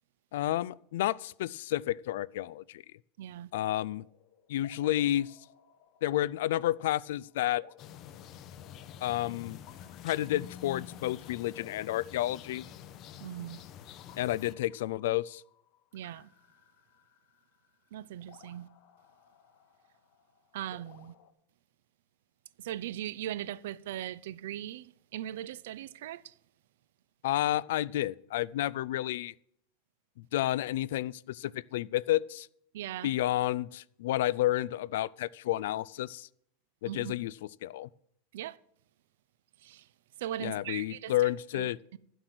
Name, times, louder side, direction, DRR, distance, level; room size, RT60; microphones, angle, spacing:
voice 1, 0.3-2.8 3.5-4.0 4.5-5.4 6.0-7.6 9.0-9.6 10.0-12.6 14.2-15.4 27.2-29.3 30.2-32.5 33.0-36.3 36.8-37.3 37.6-37.9 40.4-41.8, left 14 dB, 75° left, 0.4 m, -30 dB
voice 2, 3.2-3.5 13.2-13.6 15.9-16.3 17.9-18.7 20.5-21.1 22.6-26.3 32.7-33.1 36.9-37.2 38.3-38.6 39.6-39.9 40.2-42.0, right 12 dB, 75° right, 0.5 m, -39 dB
sound 1, 3.6-21.3, left 10 dB, 50° left, 1.2 m, -60 dB
sound 2, 7.8-14.5, left 9 dB, 35° left, 0.6 m, -47 dB
11.0 x 7.9 x 6.1 m
supercardioid pair, 155°, 0 cm